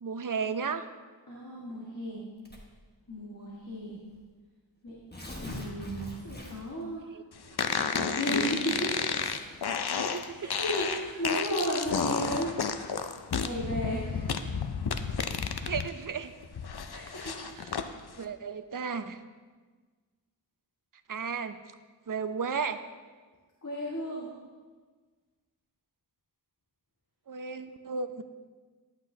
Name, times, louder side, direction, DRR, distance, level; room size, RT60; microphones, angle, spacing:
voice 1, 0.0-0.8 7.1-7.2 10.1-10.4 15.7-16.3 17.2-17.7 18.2-19.2 21.1-21.6 22.1-22.8 27.3-28.2, right 5 dB, 45° right, 10 dB, 0.5 m, -34 dB
voice 2, 1.3-2.2 3.1-4.0 4.8-4.9 5.4-7.0 7.9-8.9 9.2-9.3 10.2-13.0 13.3-14.6 16.9-17.3 23.6-24.3, equal, 45° left, -6 dB, 1.6 m, -34 dB
Tearing, 2.4-2.8 3.7-3.8 4.1-4.2 4.9-6.8, left 1 dB, 20° left, 1.3 m, -41 dB
sound 1, 7.6-15.9 16.2-17.9, left 6 dB, 60° left, 0.5 m, -31 dB
11.5 x 8.1 x 2.7 m, 1.4 s
wide cardioid pair, 45°, 44 cm